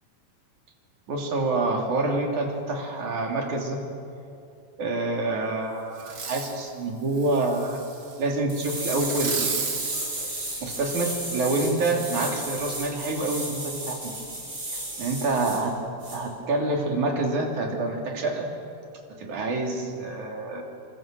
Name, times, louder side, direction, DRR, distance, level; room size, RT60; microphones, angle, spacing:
voice 1, 1.1-3.8 4.8-7.8 8.2-9.7 10.6-14.0 15.0-15.7 16.1-18.5 19.2-20.6, right 2 dB, 65° right, 1 dB, 4.7 m, -27 dB
Fireworks, 6.0-6.6 7.1-8.2 9.0-11.3 11.9-12.0, right 5 dB, 40° right, 2.9 m, -34 dB
sound 1, 8.5-15.6 16.0-16.2, right 1 dB, 25° right, 7.3 m, -34 dB
26.5 x 26.5 x 7.8 m, 2.5 s
omnidirectional pair, 3.7 m